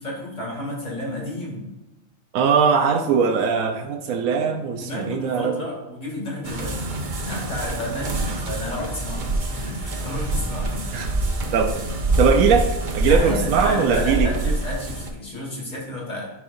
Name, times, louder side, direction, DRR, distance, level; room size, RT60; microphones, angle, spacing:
voice 1, 0.0-1.7 4.8-6.8 7.2-11.1 13.1-16.3, left 1 dB, 35° left, -4 dB, 2.5 m, -31 dB
voice 2, 2.3-5.6 10.9-11.1 11.5-11.8 12.2-12.7 12.9-14.3, right 6 dB, 85° right, 3 dB, 1.1 m, -20 dB
sound 1, 6.4-15.1, right 1 dB, 45° right, 0.8 m, -26 dB
10.5 x 4.7 x 2.6 m, 1.0 s
omnidirectional pair, 1.4 m